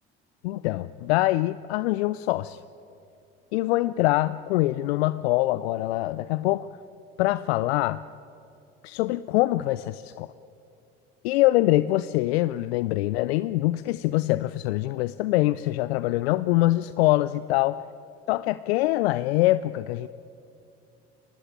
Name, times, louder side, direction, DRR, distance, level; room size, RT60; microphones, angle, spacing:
voice 1, 0.4-2.6 3.5-6.7 7.2-8.0 8.8-10.3 11.2-17.8 18.3-20.1, left 17 dB, 80° left, 16 dB, 0.5 m, -24 dB
22.5 x 18.0 x 9.1 m, 2.6 s
hypercardioid pair, 70°, 31 cm